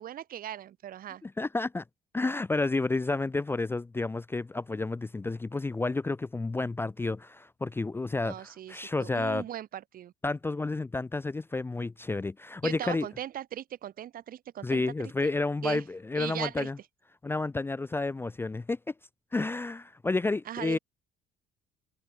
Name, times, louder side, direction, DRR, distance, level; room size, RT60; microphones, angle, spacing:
voice 1, 0.0-1.2 8.2-10.1 12.6-15.3 15.6-15.8 16.1-16.7 20.5-20.8, right 11 dB, 60° right, 2.7 m, -39 dB
voice 2, 1.2-1.8 2.1-9.4 10.2-13.1 14.6-16.8 17.2-18.8 19.3-20.8, left 3 dB, 15° left, 0.5 m, -30 dB
cardioid pair, 110°, 17 cm